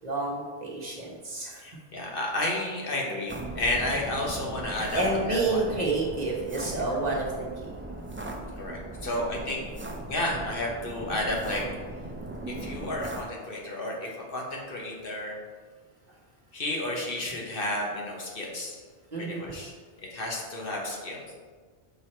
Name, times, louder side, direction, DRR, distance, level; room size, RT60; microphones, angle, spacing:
voice 1, 0.0-1.6 5.0-7.5 19.1-19.5, right 2 dB, 40° right, -3 dB, 1.2 m, -29 dB
voice 2, 1.6-5.6 8.6-9.6 10.1-11.6 12.6-15.4 16.5-18.8 19.2-19.7 20.0-21.2, left 1 dB, 60° left, -2 dB, 1.3 m, -32 dB
sound 1, 3.3-13.2, right 2 dB, 15° right, 0.4 m, -38 dB
5.5 x 4.6 x 4.4 m, 1.5 s
omnidirectional pair, 1.1 m